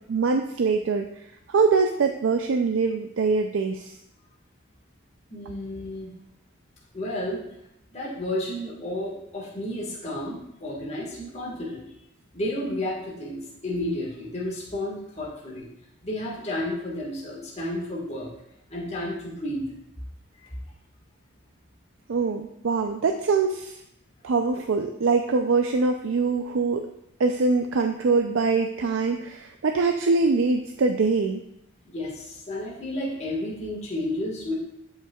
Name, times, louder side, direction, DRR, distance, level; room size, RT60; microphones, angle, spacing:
voice 1, 0.1-1.1 1.5-3.9 22.1-23.8 24.2-26.9 27.2-31.4, right 4 dB, 80° right, 5 dB, 0.4 m, -23 dB
voice 2, 5.3-6.1 6.9-7.4 7.9-11.8 12.3-15.7 16.0-18.3 18.7-19.6 31.8-34.5, left 1 dB, 30° left, -4 dB, 1.6 m, -32 dB
10.5 x 5.6 x 2.3 m, 0.79 s
head